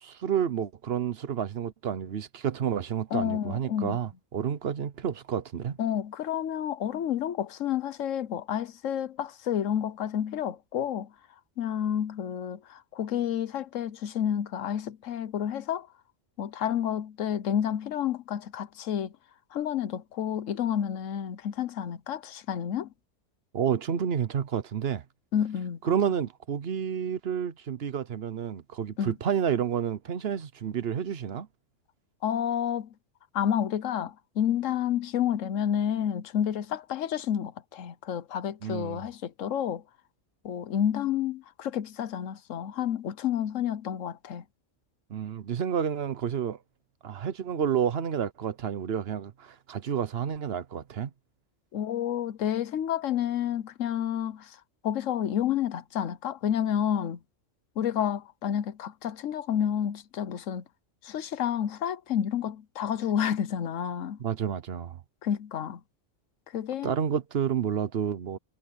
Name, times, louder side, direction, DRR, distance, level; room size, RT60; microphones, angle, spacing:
voice 1, 0.0-5.8 23.5-25.0 25.8-31.5 38.6-39.1 45.1-46.6 47.0-51.1 64.2-65.0 66.8-68.4, right 8 dB, 55° right, 1.1 m, -30 dB
voice 2, 3.1-4.0 5.8-11.1 11.6-15.9 16.4-19.1 19.5-22.9 25.3-25.9 29.0-29.1 32.2-32.9 33.3-39.8 40.4-44.4 51.7-54.6 54.8-57.2 57.8-60.6 61.0-64.2 65.2-65.8 66.5-66.9, left 9 dB, 90° left, 1.2 m, -30 dB
omnidirectional pair, 1.3 m